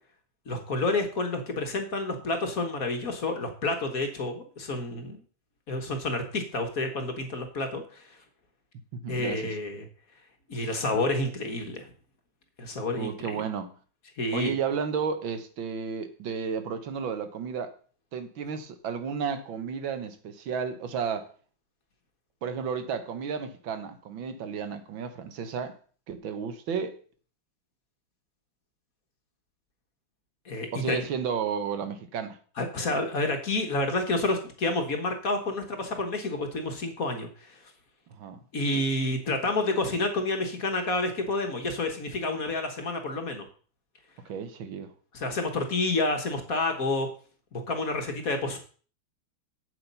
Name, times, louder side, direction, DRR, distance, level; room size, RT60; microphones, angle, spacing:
voice 1, 0.5-5.2 5.7-8.0 9.1-9.9 10.5-11.9 12.6-13.4 14.2-14.5 30.5-31.1 32.6-37.6 38.5-43.5 45.1-47.1 47.5-48.6, left 2 dB, 45° left, 1.8 m, -29 dB
voice 2, 8.9-9.6 13.0-13.7 14.3-17.7 18.1-21.3 22.4-25.8 26.1-27.0 30.7-32.4 38.2-38.4 44.3-44.9, right 6 dB, 70° right, 1.8 m, -32 dB
8.2 x 7.9 x 5.5 m
omnidirectional pair, 2.2 m